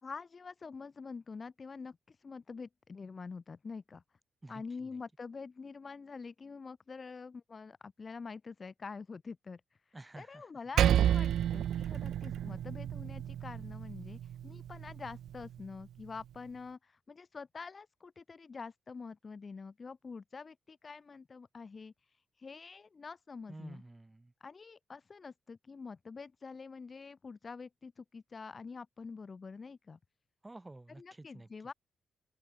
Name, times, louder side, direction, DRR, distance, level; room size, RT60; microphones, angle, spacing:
voice 1, 0.0-4.0 4.5-23.8 24.4-30.0 31.0-31.7, left 4 dB, 35° left, 2.7 m, -46 dB
voice 2, 4.4-4.9 9.9-10.5 10.7-10.8 23.5-24.3 30.4-31.5, right 2 dB, 15° right, 2.1 m, -51 dB
Percussion, 10.8-15.6, right 10 dB, 85° right, 0.7 m, -31 dB
open air
cardioid pair, 130°, 0 cm